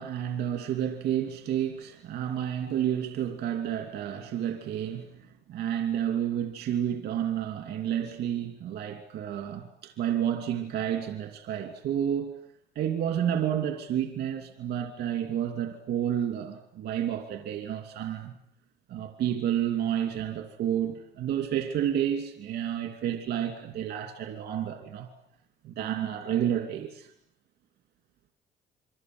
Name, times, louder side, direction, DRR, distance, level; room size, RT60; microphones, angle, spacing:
voice 1, 0.0-12.4 12.7-18.3 18.9-25.1 25.6-27.1, right 10 dB, 75° right, 2.8 m, -30 dB
27.5 x 24.0 x 7.9 m
cardioid pair, 110°, 17 cm